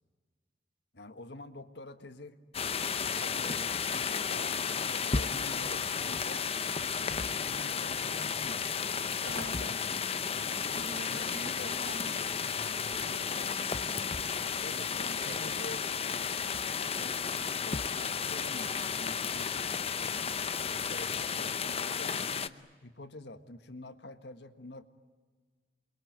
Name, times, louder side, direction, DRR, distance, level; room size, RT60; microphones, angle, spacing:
voice 1, 0.9-2.4 3.0-6.5 7.1-9.8 11.1-11.7 14.6-15.8 17.0-17.2 17.6-20.1 20.5-24.9, left 2 dB, 75° left, 9 dB, 1.6 m, -47 dB
sound 1, 2.5-22.5, left 6 dB, 35° left, 0.8 m, -33 dB
voice 2, 9.2-16.0, right 2 dB, 55° right, 5 dB, 2.6 m, -48 dB
29.0 x 22.5 x 9.0 m, 1.4 s
head